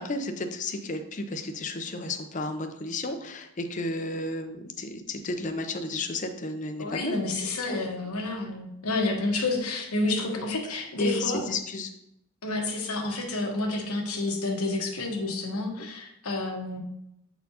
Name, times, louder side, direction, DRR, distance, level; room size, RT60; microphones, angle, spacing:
voice 1, 0.0-7.2 7.7-7.8 10.2-11.9 15.8-15.9, left 2 dB, 35° left, 7 dB, 0.5 m, -33 dB
voice 2, 6.8-11.4 12.4-16.8, left 2 dB, 85° left, 1 dB, 1.2 m, -29 dB
7.8 x 4.2 x 2.8 m, 0.80 s
head